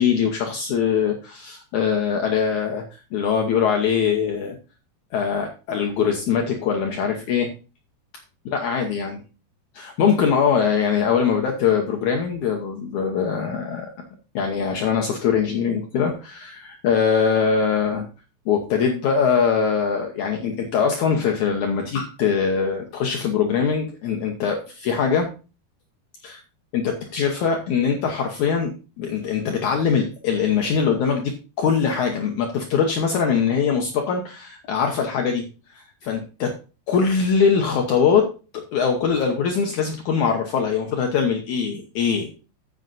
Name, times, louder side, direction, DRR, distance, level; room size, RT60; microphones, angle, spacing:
voice 1, 0.0-2.8 3.1-4.5 5.1-7.5 8.4-9.2 9.7-13.9 14.3-18.0 18.4-25.3 26.2-26.4 26.7-36.6 36.9-42.3, left 6 dB, 80° left, 2 dB, 1.7 m, -22 dB
15.5 x 6.5 x 2.6 m, 0.33 s
omnidirectional pair, 5.0 m